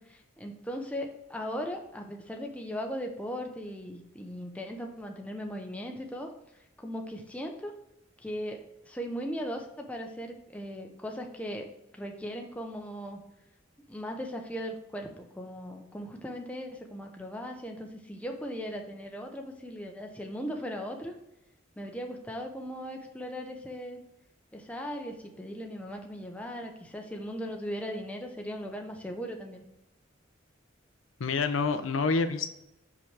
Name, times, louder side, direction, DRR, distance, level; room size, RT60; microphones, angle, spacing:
voice 1, 0.0-6.3 6.8-7.7 8.2-11.7 11.9-13.2 13.9-21.1 21.8-24.0 24.5-29.6, equal, 5° left, 2 dB, 0.7 m, -38 dB
voice 2, 31.2-32.5, left 4 dB, 85° left, 9 dB, 0.6 m, -27 dB
5.9 x 5.4 x 3.3 m, 0.87 s
head